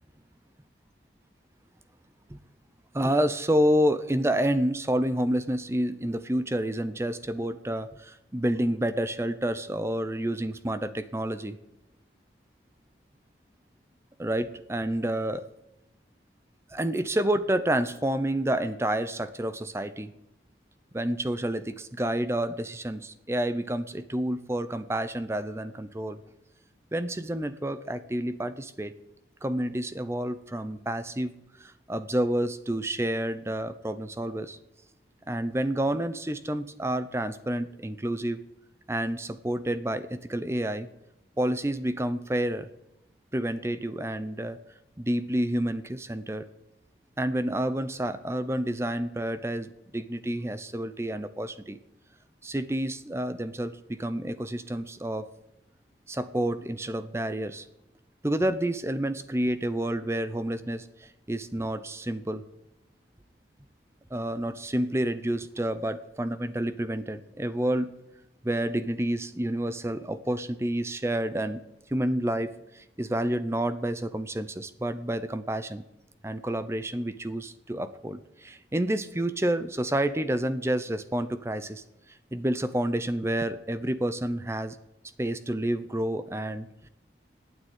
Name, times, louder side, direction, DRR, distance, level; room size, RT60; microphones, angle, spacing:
voice 1, 2.9-11.6 14.2-15.5 16.7-20.1 20.9-26.2 26.9-28.9 29.4-34.6 35.3-38.4 38.9-40.9 41.4-42.7 43.3-44.6 45.0-46.5 47.2-51.8 52.4-55.3 56.1-57.7 58.2-62.4 64.1-67.9 68.4-71.6 71.9-75.8 76.2-81.8 82.1-84.8 85.2-86.9, right 1 dB, 15° right, 13 dB, 0.6 m, -29 dB
13.0 x 9.1 x 9.1 m, 0.89 s
head